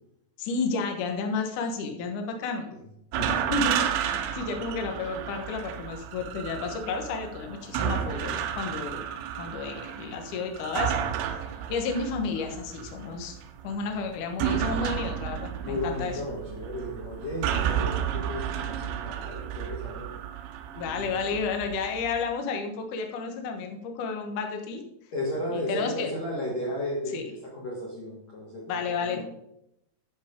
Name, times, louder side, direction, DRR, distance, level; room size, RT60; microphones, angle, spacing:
voice 1, 0.4-2.7 3.2-9.1 9.4-13.4 13.6-16.2 20.8-24.8 25.5-26.1 27.1-27.2 28.7-29.2, left 4 dB, 80° left, 5 dB, 1.8 m, -32 dB
voice 2, 3.1-3.5 15.6-20.1 20.9-21.4 25.1-29.2, left 1 dB, 60° left, -3 dB, 1.9 m, -34 dB
sound 1, 3.1-22.2, right 9 dB, 85° right, 3.3 m, -32 dB
13.5 x 5.4 x 5.2 m, 0.80 s
omnidirectional pair, 5.7 m